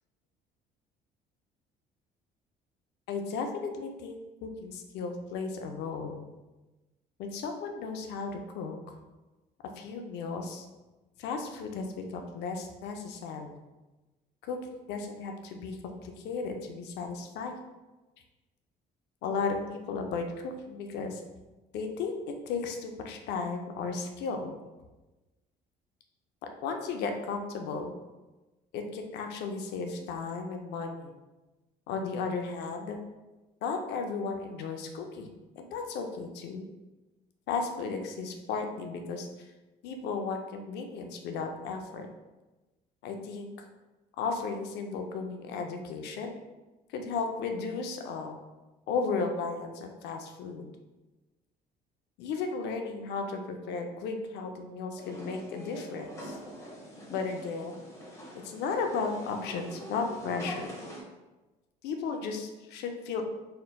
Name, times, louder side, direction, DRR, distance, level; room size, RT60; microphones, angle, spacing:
voice 1, 3.1-6.3 7.2-9.0 9.8-10.7 11.2-11.9 12.1-13.6 14.4-17.6 19.2-21.2 21.7-22.1 22.5-24.5 26.6-27.9 28.7-31.1 31.9-33.0 33.6-35.3 35.6-36.6 37.5-39.3 39.8-42.1 43.0-43.7 44.2-46.3 46.9-48.4 48.9-50.7 52.2-56.4 57.1-57.8 58.4-60.7 61.8-63.2, left 4 dB, 80° left, 4 dB, 0.6 m, -35 dB
sound 1, 55.0-61.0, equal, 15° left, 1.1 m, -44 dB
4.3 x 3.9 x 2.2 m, 1.1 s
cardioid pair, 110°, 17 cm